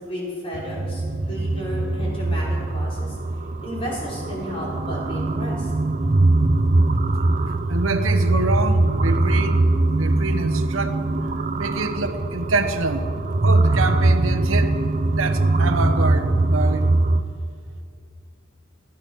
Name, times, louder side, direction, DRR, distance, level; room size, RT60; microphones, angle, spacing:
voice 1, 0.0-3.2 3.6-5.7, equal, 30° left, -5 dB, 5.2 m, -33 dB
sound 1, 0.5-17.2, right 2 dB, 40° right, 0.7 m, -21 dB
voice 2, 7.5-9.6 10.0-11.0 11.6-13.1 13.4-14.8 15.1-16.9, right 3 dB, 80° right, 8 dB, 1.1 m, -26 dB
19.0 x 13.0 x 5.7 m, 2.3 s
head